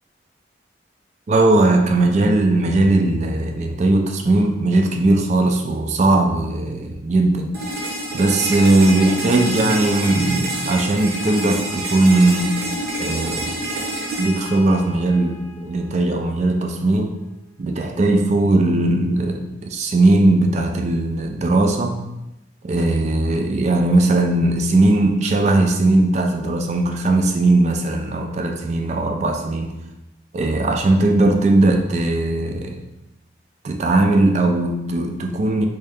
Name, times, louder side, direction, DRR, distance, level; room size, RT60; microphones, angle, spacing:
voice 1, 1.3-7.5 8.1-12.6 13.0-13.6 14.2-17.1 17.6-22.1 22.6-29.7 30.3-32.8 33.6-35.7, right 2 dB, 35° right, 4 dB, 0.3 m, -18 dB
sound 1, 7.5-15.5, right 1 dB, 55° right, 0.7 m, -27 dB
3.2 x 2.7 x 3.4 m, 0.94 s
head